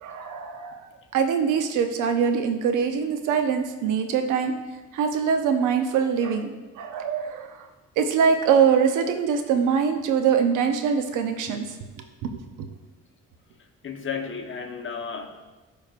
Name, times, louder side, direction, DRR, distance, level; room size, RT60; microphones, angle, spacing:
voice 1, 0.0-4.5 4.9-7.7 8.0-11.6 12.2-12.7, right 6 dB, 90° right, 7 dB, 0.7 m, -23 dB
voice 2, 13.6-15.3, left 6 dB, 40° left, 3 dB, 1.1 m, -33 dB
12.5 x 5.1 x 2.5 m, 1.2 s
cardioid pair, 90°, 30 cm